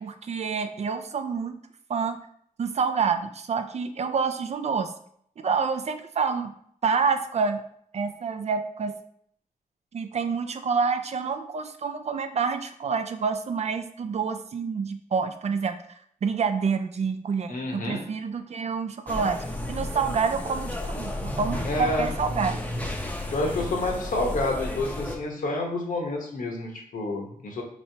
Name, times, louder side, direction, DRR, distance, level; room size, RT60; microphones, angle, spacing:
voice 1, 0.0-1.6 1.9-2.2 2.6-4.9 5.4-6.5 6.8-7.6 7.9-9.0 9.9-15.8 16.2-22.6, right 5 dB, 50° right, 9 dB, 0.4 m, -28 dB
voice 2, 17.5-18.0 21.6-22.1 23.3-27.6, left 2 dB, 70° left, 1 dB, 1.0 m, -29 dB
sound 1, 19.1-25.2, left 1 dB, 10° left, 0.6 m, -32 dB
4.3 x 3.1 x 2.7 m, 0.66 s
cardioid pair, 85°, 14 cm